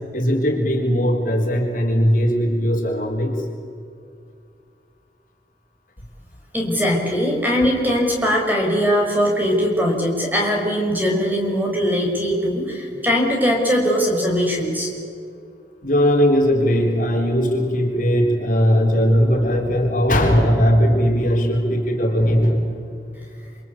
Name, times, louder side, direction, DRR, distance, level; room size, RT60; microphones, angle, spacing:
voice 1, 0.1-3.4 15.8-22.7, equal, 50° left, 0 dB, 4.2 m, -18 dB
voice 2, 6.5-14.9, equal, 10° right, 0 dB, 5.7 m, -20 dB
27.5 x 25.0 x 8.6 m, 2.4 s
head